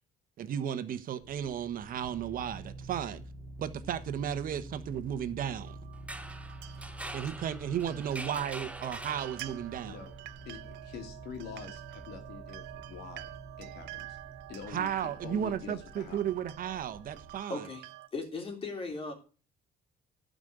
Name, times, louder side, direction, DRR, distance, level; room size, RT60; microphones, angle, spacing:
voice 1, 0.4-3.2 3.6-5.8 7.1-10.0 14.7-17.6, right 9 dB, 55° right, 1.2 m, -34 dB
sound 1, 1.2-17.4, right 2 dB, 30° right, 3.3 m, -48 dB
sound 2, 5.7-18.1, right 18 dB, 85° right, 0.6 m, -49 dB
sound 3, 5.9-9.8, right 1 dB, 10° right, 0.8 m, -44 dB
voice 2, 10.4-14.2 14.5-14.9 15.2-16.2, left 6 dB, 75° left, 2.8 m, -45 dB
voice 3, 17.5-17.9 18.1-19.1, left 3 dB, 35° left, 3.4 m, -37 dB
12.0 x 5.2 x 8.0 m
cardioid pair, 110°, 17 cm